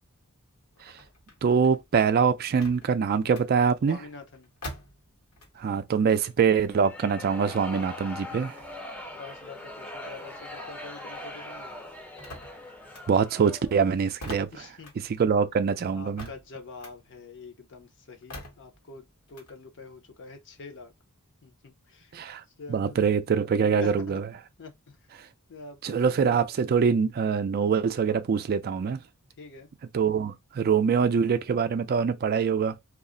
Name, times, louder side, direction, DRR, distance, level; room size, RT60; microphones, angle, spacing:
sound 1, 0.7-5.8 6.1-11.0 11.3-19.5, left 1 dB, 80° left, 1.1 m, -47 dB
voice 1, 1.4-4.0 5.6-8.6 13.1-14.5 15.0-16.3 22.1-22.4 22.7-24.2 25.8-29.0 29.9-32.8, right 6 dB, 45° right, 0.3 m, -24 dB
voice 2, 3.9-4.5 9.2-11.7 14.5-14.9 15.9-20.9 21.4-22.2 22.6-23.1 23.8-24.2 24.6-25.0 25.5-26.2 29.4-29.7, left 4 dB, 55° left, 0.6 m, -45 dB
sound 2, 6.6-13.9, left 1 dB, 5° left, 0.5 m, -41 dB
2.4 x 2.0 x 3.6 m
head